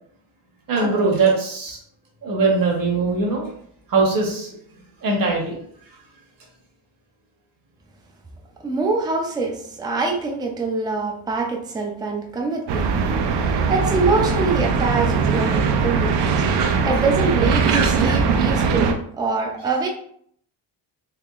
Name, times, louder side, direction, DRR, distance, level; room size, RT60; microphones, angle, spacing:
voice 1, 0.7-1.8 2.2-3.5 3.9-4.5 5.0-5.5 15.5-15.6 16.6-17.0, right 3 dB, 45° right, -1 dB, 1.2 m, -21 dB
voice 2, 8.6-12.9 13.3-19.9, right 3 dB, 10° right, 2 dB, 0.3 m, -24 dB
sound 1, 12.7-18.9, right 5 dB, 60° right, 0.5 m, -20 dB
3.6 x 3.3 x 2.4 m, 0.66 s
cardioid pair, 145°, 46 cm